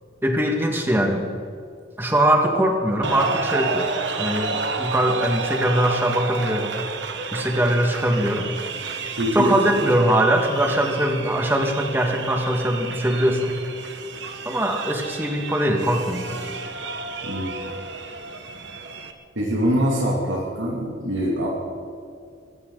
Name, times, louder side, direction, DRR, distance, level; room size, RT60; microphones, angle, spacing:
voice 1, 0.2-1.3 2.0-3.9 4.2-6.7 7.3-8.5 9.3-13.5 14.5-16.5, right 1 dB, 10° right, 2 dB, 1.7 m, -21 dB
sound 1, 3.0-19.1, right 4 dB, 70° right, 1.3 m, -31 dB
voice 2, 9.2-9.8 17.2-17.7 19.4-21.5, equal, 85° right, -3 dB, 2.6 m, -24 dB
21.0 x 16.5 x 3.9 m, 2.4 s
head